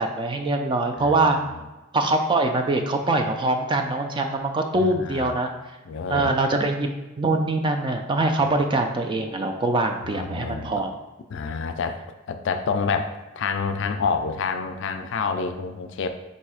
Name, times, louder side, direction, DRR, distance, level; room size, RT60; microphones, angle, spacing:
voice 1, 0.0-1.4 1.9-5.5 6.1-10.9, right 2 dB, 25° right, 4 dB, 0.3 m, -23 dB
voice 2, 1.0-1.6 4.8-5.3 5.9-6.3 10.0-10.9 11.3-12.0 12.3-16.1, left 5 dB, 60° left, 8 dB, 0.4 m, -28 dB
4.0 x 2.7 x 4.8 m, 1.1 s
head